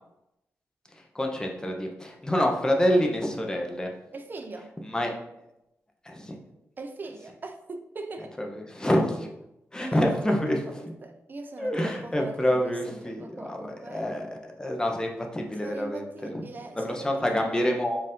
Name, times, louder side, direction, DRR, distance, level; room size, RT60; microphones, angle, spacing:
voice 1, 1.1-3.9 4.8-5.1 6.1-6.4 8.4-9.3 9.7-10.6 11.6-16.3 16.7-18.0, equal, 15° left, 1 dB, 0.6 m, -27 dB
voice 2, 4.1-4.7 6.8-8.3 9.8-10.7 11.0-14.1 15.6-17.7, right 3 dB, 35° right, 6 dB, 0.4 m, -41 dB
4.4 x 2.5 x 3.6 m, 0.88 s
wide cardioid pair, 120°, 6 cm